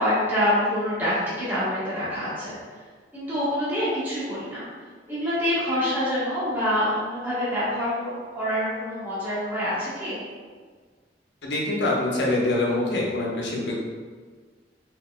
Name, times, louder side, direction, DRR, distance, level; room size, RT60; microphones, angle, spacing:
voice 1, 0.0-2.6 3.1-4.6 5.1-10.2, equal, 10° right, -11 dB, 1.2 m, -26 dB
voice 2, 11.4-13.7, left 2 dB, 80° left, -3 dB, 0.9 m, -25 dB
5.1 x 3.6 x 2.2 m, 1.6 s
head